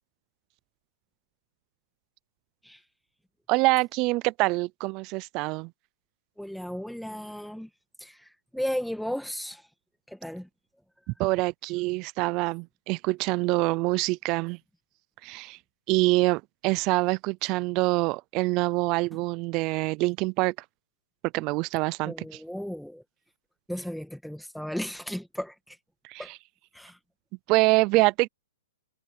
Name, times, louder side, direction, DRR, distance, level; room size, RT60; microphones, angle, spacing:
voice 1, 3.5-5.7 11.2-14.6 15.2-15.6 15.9-20.5 21.3-22.1 26.0-26.2 27.5-28.3, right 23 dB, 30° right, 0.4 m, -25 dB
voice 2, 6.4-7.7 8.0-9.7 10.1-10.5 22.0-23.0 23.7-25.8 26.2-26.3 26.7-27.0, equal, ahead, 2.1 m, -35 dB
hypercardioid pair, 155°, 0 cm